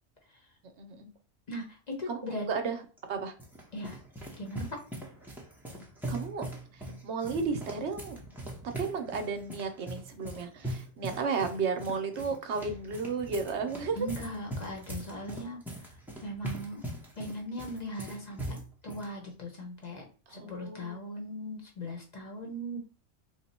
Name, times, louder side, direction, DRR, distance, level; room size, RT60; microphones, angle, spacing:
voice 1, 0.8-1.1 2.1-2.2 2.5-2.8 3.1-3.3 6.1-6.5 7.0-8.2 8.8-14.0 20.3-20.9, right 5 dB, 70° right, 6 dB, 0.9 m, -33 dB
voice 2, 1.5-2.5 3.7-4.0 4.4-4.8 14.0-15.6 16.2-16.8 17.1-18.6 18.8-22.8, equal, 35° left, 1 dB, 1.1 m, -39 dB
sound 1, 3.0-19.1, right 1 dB, ahead, 0.6 m, -41 dB
3.5 x 2.2 x 4.1 m, 0.37 s
omnidirectional pair, 1.3 m